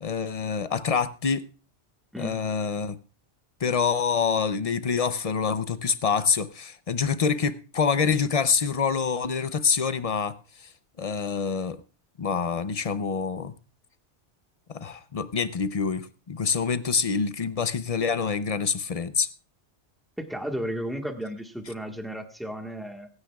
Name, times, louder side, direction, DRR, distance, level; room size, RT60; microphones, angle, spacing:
voice 1, 0.0-1.5 2.2-3.0 3.6-10.4 11.0-11.8 12.2-13.5 14.7-19.3, left 6 dB, 40° left, 0.5 m, -26 dB
voice 2, 2.1-2.4 20.2-23.1, equal, ahead, 1.4 m, -34 dB
24.5 x 9.8 x 2.3 m
omnidirectional pair, 1.2 m